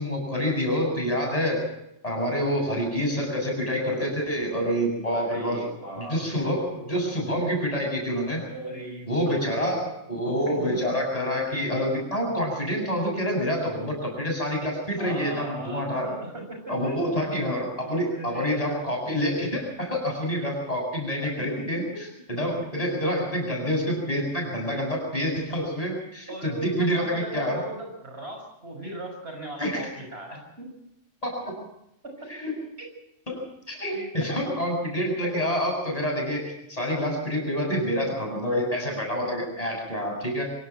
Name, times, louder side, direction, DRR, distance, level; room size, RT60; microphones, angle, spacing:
voice 1, 0.0-1.7 2.0-5.7 6.0-8.4 9.1-16.1 16.7-21.8 22.3-27.6 29.6-29.9 31.2-31.5 32.3-32.5 33.3-40.5, equal, 30° left, 1 dB, 7.9 m, -27 dB
voice 2, 5.1-6.6 7.4-7.5 8.5-9.7 10.5-10.8 15.0-17.0 18.0-18.9 21.2-21.9 26.3-30.7 31.4-31.5 32.0-32.3 32.8-32.9 33.9-34.6 35.3-35.4, right 1 dB, 55° right, 2 dB, 6.6 m, -38 dB
24.5 x 17.5 x 6.2 m, 0.81 s
omnidirectional pair, 1.3 m